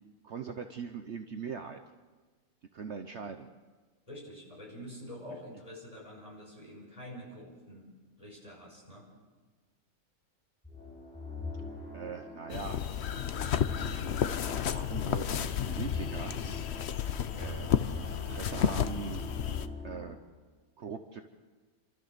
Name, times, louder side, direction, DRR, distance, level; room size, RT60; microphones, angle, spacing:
voice 1, 0.2-1.8 2.7-3.5 11.9-12.8 14.7-16.4 17.3-17.8 18.1-19.2 19.8-20.2 20.8-21.2, right 6 dB, 55° right, 6 dB, 1.1 m, -41 dB
voice 2, 4.1-7.9 8.2-9.1, equal, 25° left, -3 dB, 6.0 m, -47 dB
sound 1, 10.6-20.2, left 3 dB, 5° left, 8.0 m, -43 dB
sound 2, 12.5-19.7, left 8 dB, 55° left, 0.9 m, -32 dB
29.0 x 13.5 x 6.7 m, 1.4 s
omnidirectional pair, 1.5 m